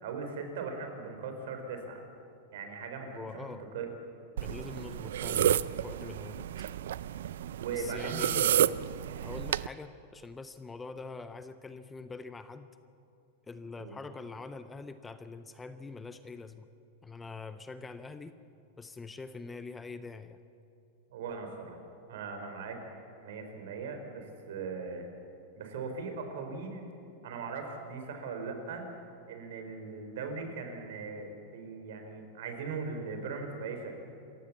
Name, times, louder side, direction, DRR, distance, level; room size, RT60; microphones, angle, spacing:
voice 1, 0.0-2.0 2.5-3.8 7.6-8.3 13.8-14.0 21.1-21.8 22.1-25.1 25.6-26.9 27.2-28.9 29.3-33.9, right 4 dB, 65° right, 5 dB, 4.1 m, -39 dB
voice 2, 3.1-3.7 4.4-6.5 7.7-8.8 9.2-12.8 13.4-16.7 17.0-18.4 18.8-20.4, left 4 dB, 10° left, 11 dB, 0.5 m, -44 dB
sound 1, 4.4-9.7, right 10 dB, 85° right, 0.5 m, -31 dB
27.0 x 15.5 x 7.3 m, 2.7 s
supercardioid pair, 170°, 0 cm